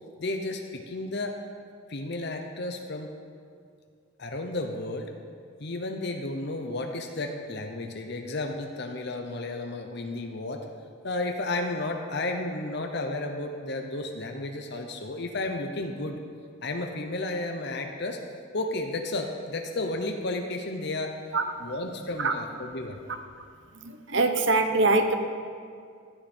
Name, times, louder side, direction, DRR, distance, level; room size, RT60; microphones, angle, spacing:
voice 1, 0.2-1.4 1.9-3.1 4.2-5.1 5.6-10.6 11.0-16.2 16.6-18.2 18.5-21.1 21.6-23.0, left 2 dB, 55° left, 4 dB, 0.9 m, -32 dB
voice 2, 23.8-25.2, right 3 dB, 60° right, 7 dB, 1.1 m, -23 dB
17.5 x 12.5 x 4.5 m, 2.3 s
head